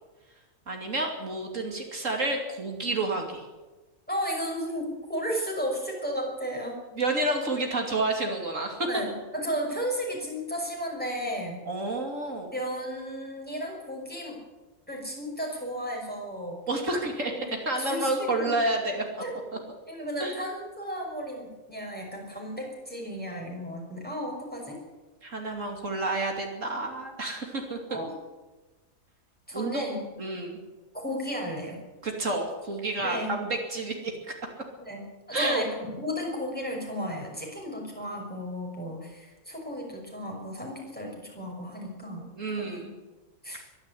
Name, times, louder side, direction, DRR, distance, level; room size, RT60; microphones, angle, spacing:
voice 1, 0.7-3.4 7.0-8.9 11.6-12.5 16.7-17.3 17.6-19.0 20.2-20.4 25.2-27.8 29.5-29.9 30.2-30.6 32.0-34.1 35.3-35.6 42.2-42.9, right 2 dB, 65° right, 2 dB, 3.1 m, -29 dB
voice 2, 4.1-6.8 8.9-11.6 12.5-14.4 14.9-16.6 17.2-17.5 17.8-18.5 19.2-19.4 19.9-24.8 27.9-28.1 29.5-30.0 31.0-31.8 33.0-33.3 34.8-42.3 42.6-42.8 43.4-43.6, equal, 5° left, -1 dB, 6.1 m, -34 dB
23.5 x 11.5 x 9.9 m, 1.2 s
omnidirectional pair, 1.4 m